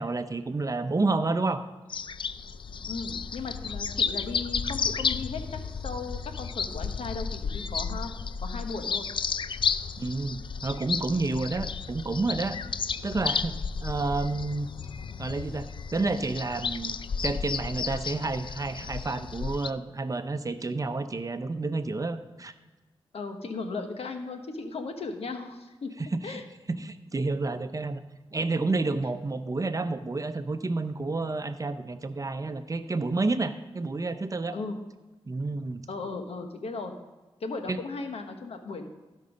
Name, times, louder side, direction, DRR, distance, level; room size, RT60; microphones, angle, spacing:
voice 1, 0.0-1.6 10.0-12.6 13.0-13.5 13.8-14.7 15.2-17.0 17.2-22.5 26.0-26.4 26.7-28.0 28.3-34.6 35.3-35.9 37.7-37.8, right 3 dB, 35° right, 9 dB, 0.7 m, -30 dB
sound 1, 1.9-19.7, left 5 dB, 55° left, 0.4 m, -33 dB
voice 2, 2.9-8.1 8.4-9.1 23.1-25.9 26.2-26.4 34.5-34.7 35.9-36.9 37.4-38.9, left 3 dB, 80° left, 6 dB, 1.2 m, -36 dB
16.0 x 5.4 x 5.2 m, 1.2 s
cardioid pair, 70°, 10 cm